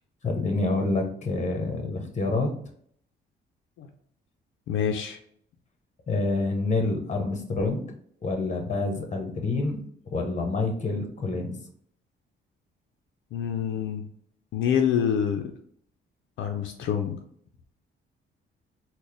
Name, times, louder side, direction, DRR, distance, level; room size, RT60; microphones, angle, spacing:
voice 1, 0.2-2.5 6.1-7.8 8.2-9.8 10.1-11.5, left 3 dB, 35° left, 3 dB, 1.0 m, -27 dB
voice 2, 4.7-5.2 13.3-14.0 14.5-15.5 16.4-17.2, left 8 dB, 80° left, 4 dB, 0.5 m, -26 dB
4.1 x 2.2 x 3.3 m, 0.63 s
cardioid pair, 90°, 20 cm